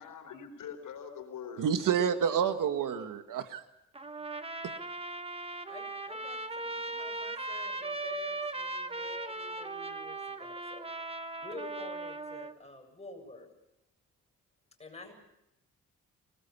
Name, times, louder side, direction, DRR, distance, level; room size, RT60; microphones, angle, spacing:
voice 1, 0.0-2.1, left 8 dB, 85° left, 6 dB, 4.3 m, -43 dB
voice 2, 1.6-3.6, right 8 dB, 75° right, 8 dB, 1.8 m, -29 dB
Trumpet, 3.9-12.5, right 2 dB, 20° right, 1.3 m, -38 dB
voice 3, 5.7-13.5 14.8-15.1, left 2 dB, 20° left, 2 dB, 7.5 m, -48 dB
25.5 x 20.0 x 7.0 m, 0.84 s
cardioid pair, 100°, 32 cm